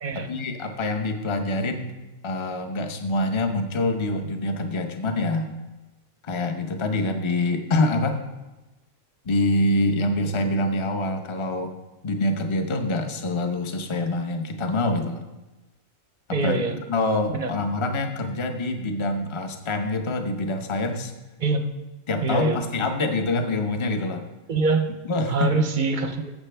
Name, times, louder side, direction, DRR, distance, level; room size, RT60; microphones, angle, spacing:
voice 1, 0.1-1.9 2.2-5.5 6.2-8.2 9.2-11.7 12.0-15.2 16.3-21.1 22.1-24.2 25.0-25.5, left 2 dB, 30° left, 6 dB, 0.7 m, -25 dB
voice 2, 16.3-16.7 17.3-17.5 21.4-21.7 22.2-22.6 24.5-24.9 25.3-26.3, right 3 dB, 45° right, 7 dB, 0.7 m, -24 dB
14.5 x 6.7 x 3.4 m, 1.1 s
omnidirectional pair, 1.4 m